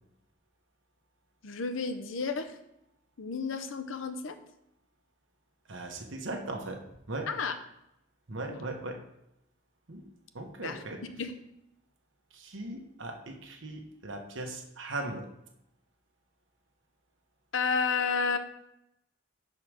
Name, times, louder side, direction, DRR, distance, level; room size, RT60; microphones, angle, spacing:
voice 1, 1.4-2.6 3.2-4.4 7.3-7.5 8.5-8.6 10.6-10.8 11.2-11.3 17.5-18.4, left 5 dB, 75° left, 8 dB, 0.7 m, -31 dB
voice 2, 5.7-6.8 7.1-7.3 8.3-9.0 9.9-10.0 10.3-11.0 12.3-15.3, right 2 dB, 75° right, 3 dB, 1.2 m, -38 dB
5.0 x 4.8 x 6.1 m, 0.82 s
head